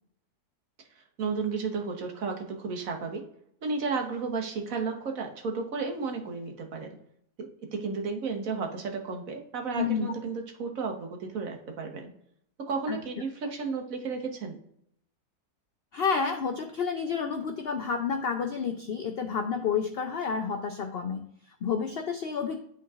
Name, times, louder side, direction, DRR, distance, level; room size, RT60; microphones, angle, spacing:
voice 1, 1.2-3.2 3.6-6.9 7.4-12.1 12.6-14.6, right 4 dB, 60° right, 3 dB, 1.4 m, -33 dB
voice 2, 9.8-10.1 12.9-13.0 15.9-22.6, left 6 dB, 90° left, 6 dB, 0.5 m, -30 dB
11.0 x 3.8 x 2.4 m, 0.72 s
omnidirectional pair, 1.6 m